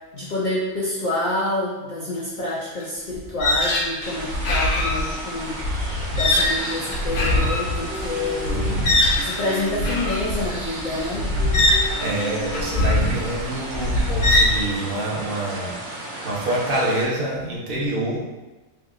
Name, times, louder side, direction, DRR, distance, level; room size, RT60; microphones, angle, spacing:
voice 1, 0.1-5.6 6.2-8.7 9.2-11.3, left 2 dB, 80° left, -5 dB, 0.4 m, -27 dB
sound 1, 2.8-2.9 3.1-14.7, left 1 dB, 60° left, 0.8 m, -22 dB
sound 2, 4.0-17.1, right 2 dB, 70° right, 1.1 m, -34 dB
sound 3, 7.2-10.4 11.1-13.4, right 3 dB, 20° right, 0.3 m, -37 dB
voice 2, 8.4-9.1 12.0-18.2, right 1 dB, 50° right, -4 dB, 0.8 m, -27 dB
3.4 x 2.7 x 2.4 m, 1.1 s
omnidirectional pair, 1.4 m